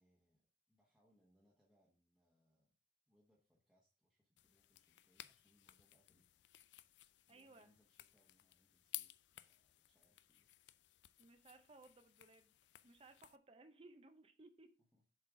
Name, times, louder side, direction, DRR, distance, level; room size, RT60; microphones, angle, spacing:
voice 1, 0.0-2.7 3.1-6.3 7.3-10.5 14.9-15.0, equal, 5° right, -4 dB, 1.2 m, -78 dB
sound 1, 4.4-13.4, left 15 dB, 85° left, 0.4 m, -57 dB
voice 2, 7.3-7.7 11.2-12.5 12.8-14.7, right 2 dB, 35° right, 8 dB, 0.8 m, -62 dB
7.2 x 4.4 x 5.0 m, 0.36 s
head